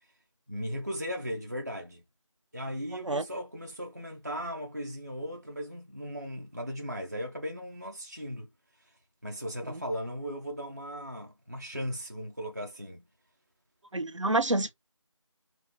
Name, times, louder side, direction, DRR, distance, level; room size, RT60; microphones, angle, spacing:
voice 1, 0.5-2.0 2.5-8.5 9.2-13.0, equal, 35° right, 0.5 m, -37 dB
voice 2, 13.9-14.7, right 2 dB, 70° right, 0.7 m, -27 dB
3.0 x 2.2 x 2.7 m
figure-of-eight pair, 170°, 17 cm